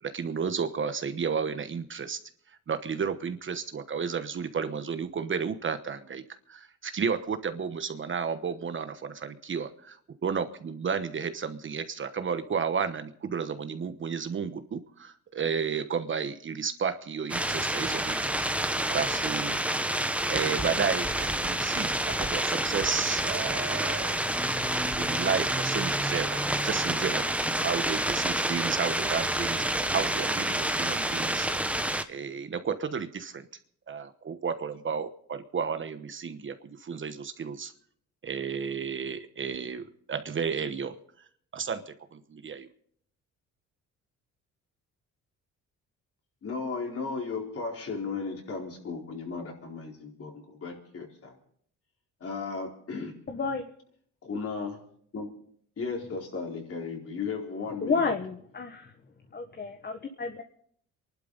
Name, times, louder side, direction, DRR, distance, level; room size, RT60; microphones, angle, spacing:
voice 1, 0.0-2.2 2.7-6.2 6.5-18.2 18.6-19.6 20.3-24.3 24.9-27.3 27.6-31.5 31.7-33.5 33.9-37.7 38.2-41.0 41.5-42.7, right 6 dB, 40° right, 10 dB, 1.1 m, -32 dB
sound 1, 17.3-32.0, right 1 dB, 5° right, 1.1 m, -28 dB
voice 2, 46.4-51.4 52.2-53.1 54.2-54.8 55.1-55.4 55.8-58.1, left 4 dB, 50° left, 0 dB, 4.2 m, -35 dB
voice 3, 53.3-53.6 57.8-58.9 59.3-59.9 60.2-60.3, left 4 dB, 35° left, 5 dB, 1.5 m, -30 dB
27.5 x 11.5 x 4.0 m, 0.63 s
cardioid pair, 90°, 30 cm